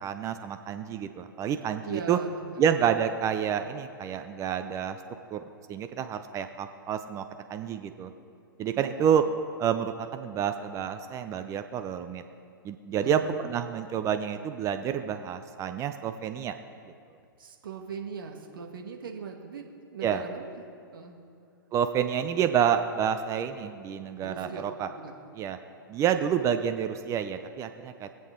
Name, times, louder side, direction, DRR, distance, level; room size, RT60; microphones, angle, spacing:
voice 1, 0.0-2.2 2.6-5.0 5.3-5.4 5.7-7.2 7.5-8.1 8.6-9.2 9.6-12.2 12.6-16.6 20.0-20.2 21.7-24.9 25.4-25.6 25.9-28.1, right 8 dB, 25° right, 9 dB, 0.6 m, -28 dB
voice 2, 1.8-2.6 8.7-9.3 13.0-13.4 17.4-20.4 20.9-21.1 24.2-25.2, right 5 dB, 70° right, 3 dB, 1.6 m, -40 dB
23.0 x 7.8 x 3.8 m, 2.4 s
hypercardioid pair, 115°, 12 cm